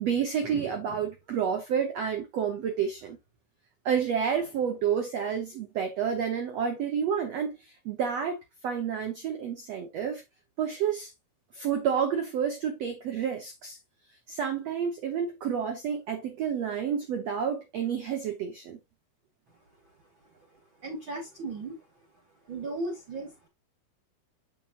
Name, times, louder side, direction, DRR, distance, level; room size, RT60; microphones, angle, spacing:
voice 1, 0.0-3.2 3.8-10.2 10.6-11.1 11.5-13.8 14.3-18.8, right 7 dB, 70° right, 1.6 m, -30 dB
voice 2, 20.7-21.9 22.5-23.5, right 2 dB, 35° right, 2.3 m, -36 dB
7.3 x 7.1 x 2.6 m
omnidirectional pair, 4.5 m